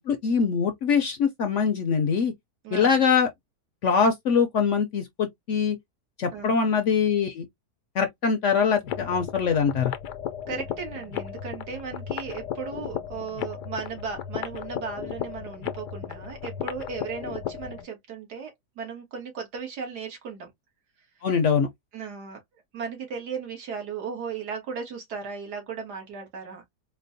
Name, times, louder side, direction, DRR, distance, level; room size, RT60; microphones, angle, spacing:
voice 1, 0.1-2.3 2.7-3.3 3.8-5.8 6.2-7.4 8.0-9.9 21.2-21.7, left 6 dB, 65° left, 0.7 m, -23 dB
voice 2, 2.6-3.0 6.3-6.6 10.5-20.5 21.9-22.4 22.7-26.6, right 6 dB, 80° right, 2.0 m, -36 dB
sound 1, 8.8-17.9, left 9 dB, 90° left, 1.2 m, -35 dB
4.3 x 2.1 x 2.6 m
omnidirectional pair, 1.7 m